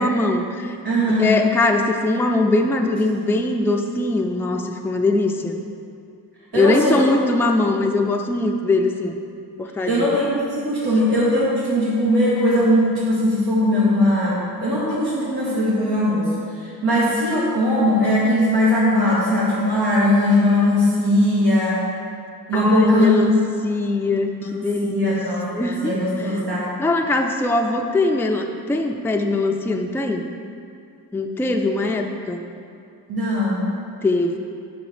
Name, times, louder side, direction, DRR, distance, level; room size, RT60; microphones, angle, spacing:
voice 1, 0.0-0.8 1.2-5.6 6.5-9.1 9.6-10.2 22.5-23.4 23.6-25.2 25.5-25.9 26.2-26.4 26.8-30.2 31.1-32.4 34.0-34.4, left 2 dB, 5° left, 3 dB, 0.3 m, -21 dB
voice 2, 0.8-1.4 6.5-7.1 9.9-16.3 16.6-21.8 22.5-23.2 24.8-26.7 33.1-33.7, left 1 dB, 90° right, -7 dB, 1.2 m, -19 dB
5.1 x 5.1 x 4.9 m, 2.4 s
wide cardioid pair, 70°, 37 cm